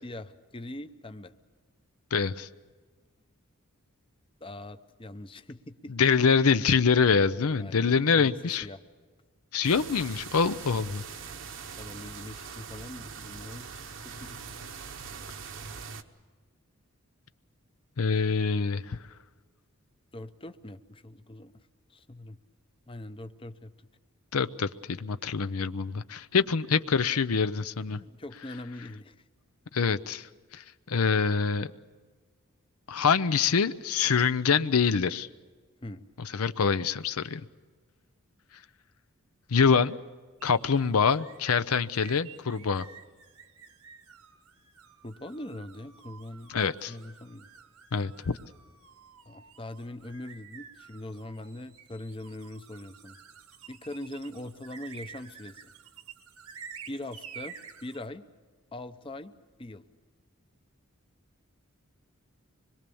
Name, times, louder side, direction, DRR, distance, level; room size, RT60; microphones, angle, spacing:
voice 1, 0.0-1.3 4.4-5.9 7.6-8.8 11.8-14.6 20.1-22.4 22.9-23.9 27.9-29.2 35.8-36.1 45.0-46.6 46.9-47.5 49.3-53.2 53.7-55.7 56.9-58.2 58.7-59.3 59.6-59.8, left 1 dB, 25° left, 10 dB, 0.7 m, -42 dB
voice 2, 2.1-2.5 5.9-8.6 9.5-11.0 18.0-19.0 24.3-28.0 29.7-30.3 30.5-31.7 32.9-35.3 36.2-37.4 39.5-40.0 40.4-42.9 46.5-46.9 47.9-48.4, left 5 dB, 75° left, 13 dB, 0.6 m, -25 dB
sound 1, 9.6-16.0, right 6 dB, 55° right, 1.1 m, -42 dB
sound 2, 40.4-58.1, right 7 dB, 75° right, 1.6 m, -50 dB
25.0 x 22.0 x 7.0 m, 1.4 s
head